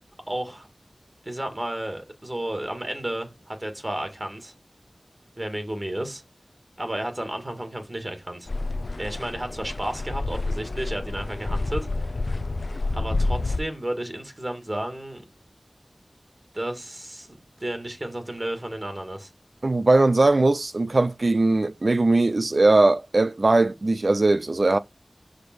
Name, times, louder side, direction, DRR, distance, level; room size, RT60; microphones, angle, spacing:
voice 1, 0.3-0.7 1.3-4.5 5.4-6.2 6.8-8.5 9.0-12.1 13.0-15.2 16.5-19.3, right 1 dB, 35° right, 2.3 m, -32 dB
sound 1, 8.5-13.6, left 2 dB, 75° left, 0.6 m, -28 dB
voice 2, 19.6-24.8, right 2 dB, 65° right, 0.4 m, -20 dB
6.0 x 5.2 x 6.2 m
wide cardioid pair, 50°, 0 cm